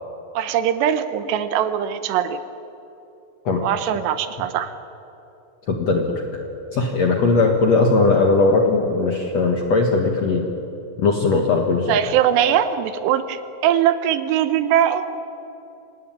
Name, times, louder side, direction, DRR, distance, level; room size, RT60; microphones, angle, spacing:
voice 1, 0.3-2.4 3.6-4.7 11.9-15.1, right 10 dB, 75° right, 11 dB, 3.0 m, -21 dB
voice 2, 5.7-6.1 6.7-10.5 11.0-12.0, left 3 dB, 55° left, 2 dB, 1.9 m, -18 dB
26.5 x 18.5 x 9.0 m, 2.8 s
omnidirectional pair, 5.2 m